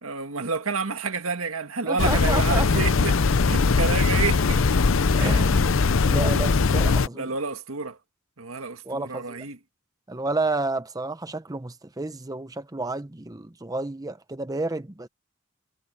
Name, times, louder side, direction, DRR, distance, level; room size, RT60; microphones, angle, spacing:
voice 1, 0.0-4.7 5.2-5.4 6.8-8.0 8.4-9.6, right 4 dB, 85° right, 1.7 m, -30 dB
voice 2, 1.9-2.7 5.1-7.3 8.9-9.4 10.1-15.1, right 2 dB, 20° right, 0.8 m, -31 dB
sound 1, 2.0-7.1, left 4 dB, 65° left, 0.6 m, -20 dB
head